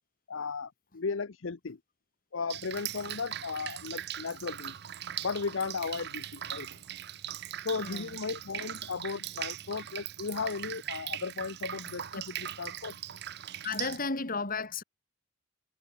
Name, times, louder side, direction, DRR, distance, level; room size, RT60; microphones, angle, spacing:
voice 1, 0.3-1.8 2.3-4.8 5.2-6.7 7.6-13.0, left 5 dB, 65° left, 0.7 m, -36 dB
Drip, 2.5-14.0, right 11 dB, 55° right, 0.7 m, -40 dB
voice 2, 13.6-14.8, left 4 dB, 45° left, 2.9 m, -33 dB
head